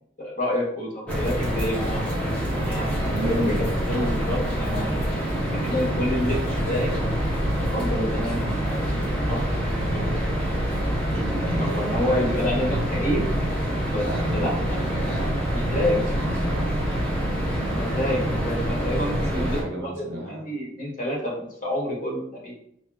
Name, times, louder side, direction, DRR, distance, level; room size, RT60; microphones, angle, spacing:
voice 1, 0.2-2.0 2.6-5.1 5.5-6.4 6.7-6.9 7.7-8.4 8.9-10.2 11.6-13.3 13.9-14.0 14.3-14.8 15.5-16.0 17.7-22.5, left 1 dB, 40° left, -4 dB, 0.8 m, -28 dB
sound 1, 1.1-19.6, equal, 5° left, 0.5 m, -26 dB
voice 2, 3.1-3.7 11.1-12.4 13.9-17.1 19.1-20.4, right 1 dB, 80° right, -2 dB, 0.8 m, -33 dB
sound 2, 7.3-13.2, equal, 15° right, 0.8 m, -36 dB
2.8 x 2.3 x 2.3 m, 0.74 s
head